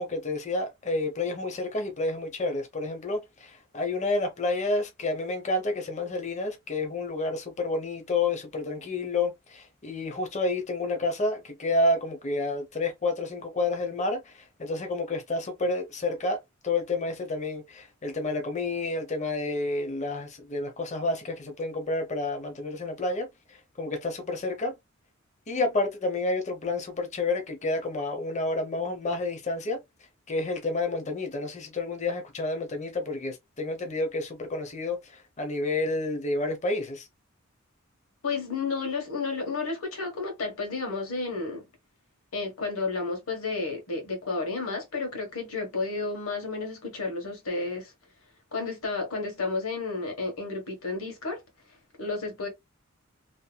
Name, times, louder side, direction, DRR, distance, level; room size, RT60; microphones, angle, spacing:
voice 1, 0.0-16.4 16.6-24.7 25.5-29.8 30.3-37.1, left 2 dB, 35° left, 0.7 m, -30 dB
voice 2, 38.2-41.6 42.3-47.9 48.5-51.4 52.0-52.5, left 3 dB, 85° left, 1.3 m, -31 dB
2.8 x 2.6 x 2.2 m
head